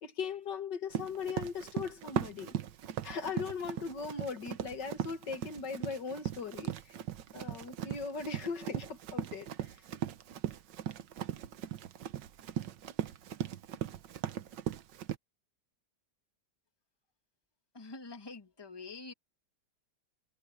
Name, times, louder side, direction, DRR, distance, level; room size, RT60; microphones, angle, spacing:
voice 1, 0.0-2.6 3.0-7.0 7.3-9.8, left 5 dB, 75° left, 2.5 m, -39 dB
Run, 0.9-15.2, right 10 dB, 90° right, 1.6 m, -38 dB
voice 2, 17.7-19.1, left 3 dB, 15° left, 1.7 m, -46 dB
omnidirectional pair, 1.9 m